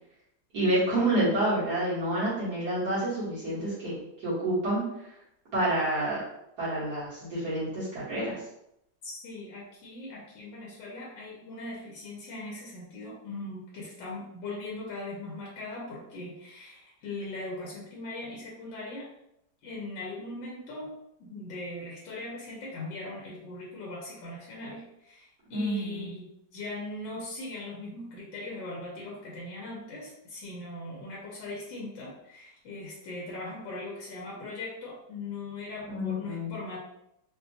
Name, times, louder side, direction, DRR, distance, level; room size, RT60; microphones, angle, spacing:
voice 1, 0.5-4.8 5.5-6.2 6.6-8.4 25.5-26.1 35.9-36.5, right 1 dB, 60° right, -11 dB, 1.9 m, -28 dB
voice 2, 9.0-19.1 19.6-26.3 26.5-36.8, left 2 dB, 85° left, -3 dB, 1.4 m, -40 dB
4.0 x 2.2 x 2.7 m, 0.80 s
omnidirectional pair, 2.0 m